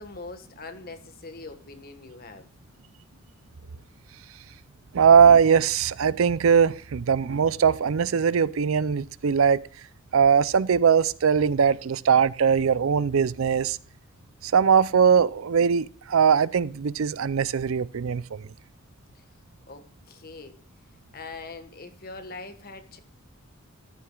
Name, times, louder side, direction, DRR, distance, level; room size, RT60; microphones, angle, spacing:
voice 1, 0.0-2.5 19.1-19.2 19.7-20.6 21.1-23.0, left 3 dB, 45° left, 1.5 m, -42 dB
voice 2, 4.9-9.6 10.1-13.8 14.4-18.5, right 7 dB, 75° right, 0.5 m, -20 dB
14.0 x 11.5 x 2.3 m
head